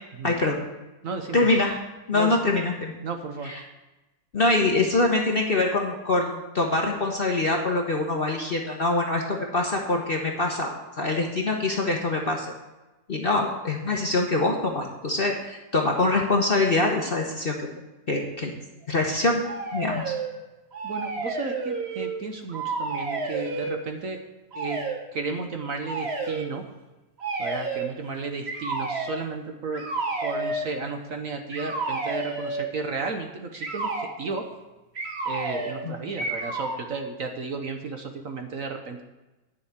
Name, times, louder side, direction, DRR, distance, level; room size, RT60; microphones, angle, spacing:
voice 1, 0.2-0.6 1.3-1.8 2.1-2.9 3.4-3.6 4.3-12.5 13.1-17.6 18.1-18.5 18.9-19.4 19.7-20.1 35.8-35.9, left 2 dB, 40° left, 1 dB, 1.0 m, -24 dB
voice 2, 1.0-1.5 2.1-2.4 3.0-3.5 20.8-24.2 24.5-24.8 25.1-26.6 27.4-29.8 30.2-34.4 35.3-39.0, right 4 dB, 55° right, 5 dB, 1.1 m, -33 dB
sound 1, 19.4-20.3 20.7-22.2 22.5-23.8 24.5-25.0 25.8-26.5 27.2-27.9 28.4-29.2 29.7-30.7 31.5-32.7 33.6-34.1 34.9-35.8 36.2-36.8, right 3 dB, 40° right, 1.4 m, -30 dB
10.0 x 5.5 x 8.1 m, 1.1 s
omnidirectional pair, 1.9 m